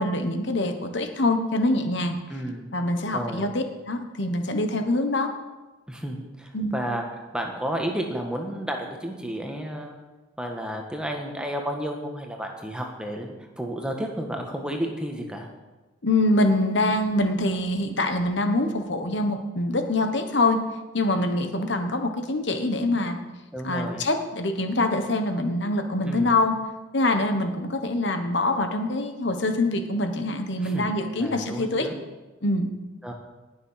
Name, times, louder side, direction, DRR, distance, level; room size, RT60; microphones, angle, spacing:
voice 1, 0.0-2.1 2.7-5.3 6.5-6.7 16.0-20.6 20.9-23.2 23.6-26.5 26.9-31.9 32.4-32.7, left 2 dB, 60° left, 6 dB, 1.2 m, -24 dB
voice 2, 2.3-2.7 3.1-3.5 5.9-10.0 10.4-15.5 23.5-24.1 26.0-26.3 30.6-30.9 31.2-31.9 33.0-33.1, equal, 5° right, 2 dB, 1.4 m, -32 dB
19.0 x 6.8 x 5.8 m, 1.2 s
head